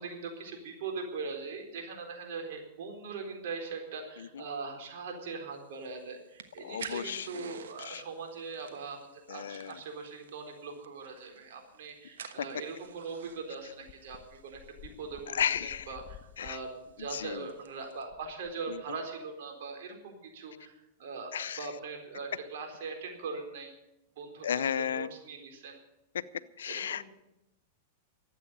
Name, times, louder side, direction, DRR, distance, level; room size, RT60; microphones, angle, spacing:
voice 1, 0.0-14.6 15.0-23.7 24.2-25.8 26.7-27.1, right 4 dB, 65° right, 3 dB, 4.1 m, -41 dB
sound 1, 5.6-18.0, right 8 dB, 85° right, 1.2 m, -52 dB
voice 2, 6.6-8.0 9.3-9.7 15.3-15.9 16.4-16.6 17.1-17.5 18.7-18.8 21.3-21.6 24.4-25.1 26.6-27.1, left 8 dB, 85° left, 15 dB, 0.7 m, -34 dB
sound 2, 13.9-19.1, left 10 dB, 30° left, 1.5 m, -54 dB
13.0 x 8.5 x 9.9 m, 0.92 s
hypercardioid pair, 120°, 0 cm